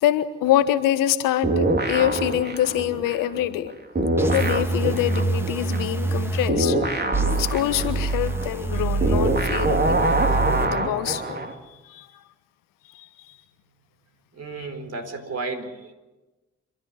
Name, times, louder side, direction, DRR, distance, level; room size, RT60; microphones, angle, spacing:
voice 1, 0.0-3.7 4.3-10.2 10.6-12.1 12.9-13.1 14.6-14.7, left 12 dB, 65° left, 12 dB, 1.3 m, -25 dB
sound 1, 1.4-3.7 3.9-11.5, right 2 dB, 30° right, 3.3 m, -25 dB
sound 2, 4.2-6.5 7.1-10.7, right 3 dB, 5° right, 2.4 m, -26 dB
voice 2, 14.3-15.9, right 3 dB, 45° right, 6 dB, 4.4 m, -33 dB
27.5 x 13.0 x 9.8 m, 1.1 s
figure-of-eight pair, 45°, 36 cm